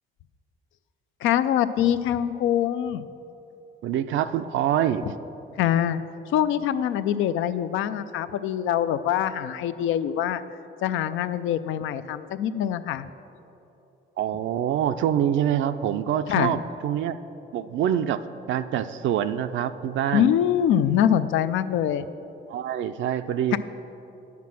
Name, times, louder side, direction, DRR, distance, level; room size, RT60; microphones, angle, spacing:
voice 1, 1.2-3.1 5.6-6.0 6.3-10.4 10.8-13.1 16.3-16.5 20.1-22.1 23.5-23.6, left 10 dB, 85° left, 12 dB, 0.4 m, -24 dB
voice 2, 3.8-5.1 14.2-17.2 17.5-18.2 18.5-20.3 22.5-23.6, right 10 dB, 75° right, 10 dB, 0.4 m, -25 dB
9.3 x 5.9 x 7.4 m, 3.0 s
cardioid pair, 90°, 20 cm